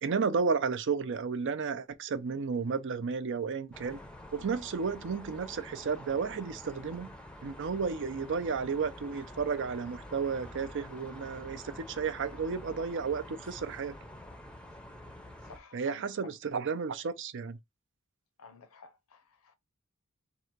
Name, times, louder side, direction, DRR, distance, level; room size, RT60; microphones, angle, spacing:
voice 1, 0.0-4.0 4.3-7.1 7.4-13.9 15.7-17.6, right 5 dB, 60° right, 0.5 m, -32 dB
Backyard in city at noon, 3.7-15.6, left 1 dB, 5° left, 0.6 m, -48 dB
voice 2, 15.4-16.1 18.4-19.6, left 4 dB, 75° left, 0.7 m, -53 dB
3.7 x 2.5 x 4.5 m
head